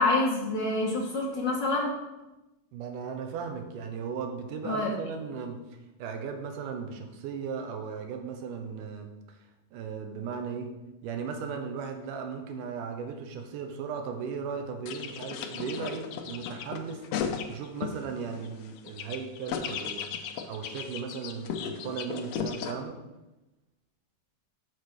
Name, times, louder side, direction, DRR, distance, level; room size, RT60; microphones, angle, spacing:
voice 1, 0.0-1.9 4.6-4.9, left 2 dB, 65° left, -2 dB, 1.1 m, -27 dB
voice 2, 2.7-5.6 6.0-9.1 9.7-10.7 11.0-17.0 17.5-20.1 20.5-23.0, right 6 dB, 90° right, 5 dB, 2.4 m, -36 dB
sound 1, 14.9-18.0 18.3-22.7, left 7 dB, 90° left, 1.4 m, -35 dB
6.6 x 4.2 x 6.5 m, 1.0 s
omnidirectional pair, 3.6 m